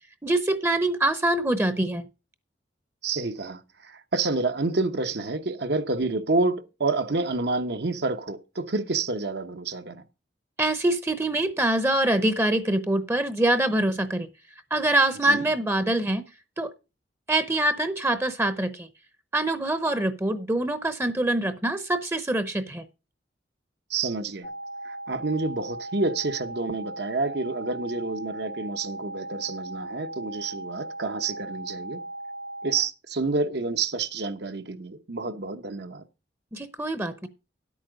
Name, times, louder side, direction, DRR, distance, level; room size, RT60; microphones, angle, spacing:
voice 1, 0.2-2.1 10.6-14.3 14.7-16.2 16.6-16.7 17.3-18.9 19.3-22.8 36.5-37.3, right 1 dB, 15° right, 0.7 m, -24 dB
voice 2, 3.0-10.0 15.2-15.4 23.9-24.5 24.8-32.0 32.6-36.0, right 3 dB, 65° right, 1.0 m, -28 dB
sound 1, 24.4-32.8, right 2 dB, 35° left, 0.8 m, -38 dB
11.0 x 8.5 x 5.1 m
head